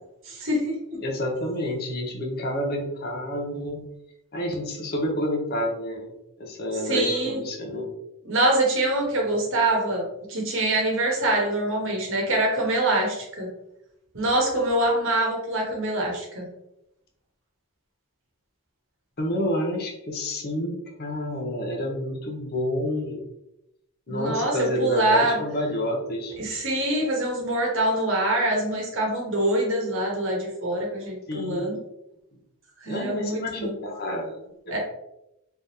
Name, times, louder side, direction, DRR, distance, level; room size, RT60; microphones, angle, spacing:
voice 1, 0.2-1.0 6.8-7.4 8.2-13.5 14.1-16.5 24.1-25.4 26.4-31.8 32.8-33.7 34.7-34.8, right 1 dB, 60° right, -1 dB, 1.1 m, -24 dB
voice 2, 1.0-3.8 4.3-7.9 19.2-23.2 24.1-26.4 31.3-31.7 32.9-34.8, left 1 dB, 45° left, 1 dB, 0.7 m, -29 dB
3.5 x 3.4 x 2.7 m, 0.85 s
head